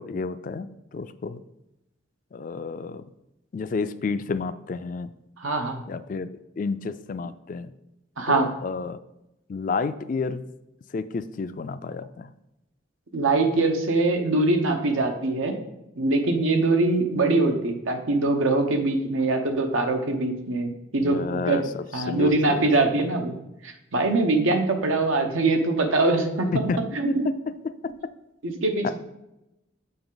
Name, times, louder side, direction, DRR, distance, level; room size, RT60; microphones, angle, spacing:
voice 1, 0.0-1.4 2.3-3.0 3.5-5.1 5.9-7.7 8.3-9.0 9.5-10.4 10.9-12.3 21.0-23.0 26.5-26.8 27.1-27.3 27.6-27.9 28.8-28.9, left 4 dB, 40° left, 12 dB, 0.3 m, -30 dB
voice 2, 5.4-5.8 8.2-8.5 13.1-15.6 16.0-21.6 21.9-23.4 23.6-26.5 26.9-27.3 28.4-28.9, right 2 dB, 90° right, 5 dB, 1.0 m, -23 dB
6.9 x 6.0 x 3.9 m, 0.90 s
head